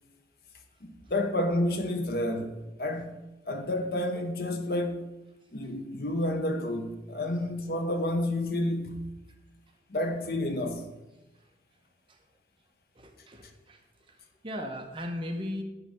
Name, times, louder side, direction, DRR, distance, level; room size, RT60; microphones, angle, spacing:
voice 1, 0.8-3.2 3.5-5.1 5.5-9.1 9.9-10.9, left 1 dB, 55° left, 0.8 m, -30 dB
voice 2, 13.0-13.8 14.1-14.2 14.4-15.6, left 1 dB, 30° right, 0.8 m, -37 dB
9.7 x 3.3 x 6.6 m
head